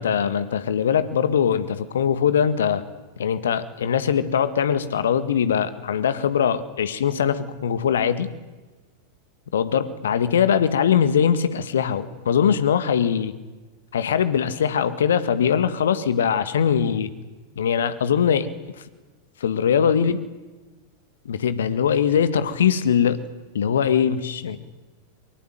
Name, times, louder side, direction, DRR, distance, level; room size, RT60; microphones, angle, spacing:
voice 1, 0.0-2.8 3.2-8.3 9.5-13.3 13.9-17.1 17.6-18.5 19.4-20.2 21.3-23.2 23.5-24.6, left 8 dB, 65° left, 13 dB, 1.9 m, -21 dB
23.5 x 22.5 x 9.3 m, 1.2 s
figure-of-eight pair, 90°, 0 cm